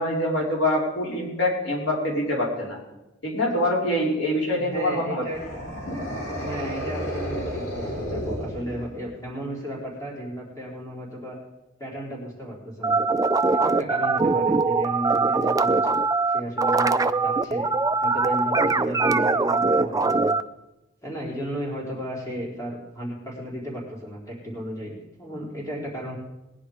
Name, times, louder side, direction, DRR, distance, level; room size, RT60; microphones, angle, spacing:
voice 1, 0.0-2.8 3.2-5.2, left 1 dB, 70° left, -3 dB, 4.5 m, -25 dB
voice 2, 4.5-5.4 6.4-11.4 11.8-13.0 13.5-15.8 16.3-17.7 18.0-20.3 21.0-26.2, equal, 15° left, -4 dB, 4.4 m, -34 dB
sound 1, 5.3-9.1, equal, 90° left, 6.8 m, -32 dB
sound 2, 12.8-20.4, right 3 dB, 20° right, 0.5 m, -22 dB
20.0 x 10.5 x 5.1 m, 0.96 s
head